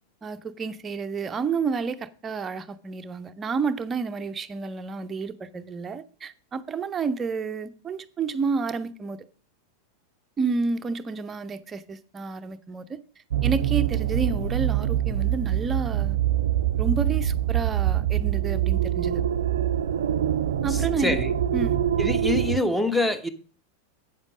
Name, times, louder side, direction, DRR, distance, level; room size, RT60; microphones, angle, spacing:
voice 1, 0.2-9.2 10.4-13.0 13.4-16.2 16.8-19.2 20.6-21.2 21.5-21.8, right 5 dB, 20° right, 0.8 m, -30 dB
sound 1, 13.3-22.6, right 11 dB, 60° right, 0.5 m, -24 dB
voice 2, 20.7-21.3 22.0-23.3, left 2 dB, 5° left, 1.0 m, -25 dB
8.8 x 7.3 x 5.0 m
figure-of-eight pair, 90°, 0 cm